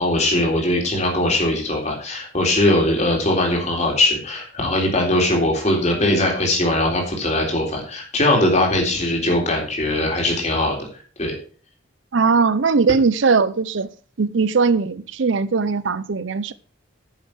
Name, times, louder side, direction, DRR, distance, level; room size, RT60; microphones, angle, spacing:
voice 1, 0.0-10.9 11.2-11.4, left 1 dB, 35° left, 3.7 m, -20 dB
voice 2, 12.1-13.9 14.2-16.5, right 4 dB, 65° right, 0.6 m, -19 dB
9.7 x 7.1 x 6.1 m
head